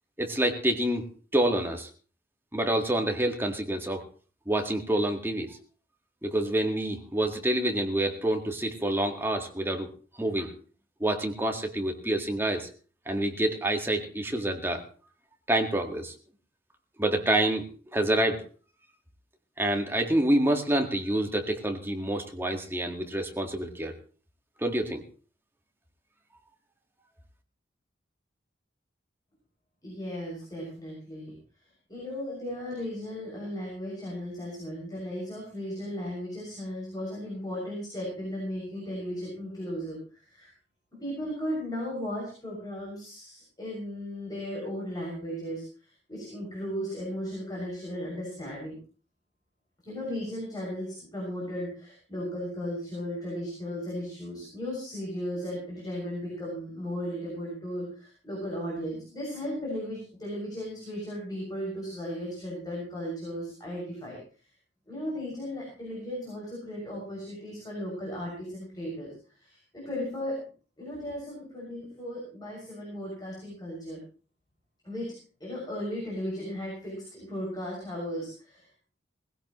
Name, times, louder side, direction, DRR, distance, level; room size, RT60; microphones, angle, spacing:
voice 1, 0.2-1.9 2.5-4.1 4.5-5.6 6.2-9.9 10.2-10.5 11.0-12.7 13.1-14.8 15.5-16.1 17.0-18.4 19.6-23.9 24.6-25.0, right 1 dB, 10° right, 3 dB, 1.8 m, -27 dB
voice 2, 29.8-31.3 31.9-40.5 41.0-48.8 49.8-64.2 64.9-69.1 69.3-70.4 70.8-74.0 74.8-75.1 75.4-78.8, equal, 20° left, -4 dB, 6.7 m, -36 dB
19.5 x 16.5 x 3.1 m, 0.38 s
head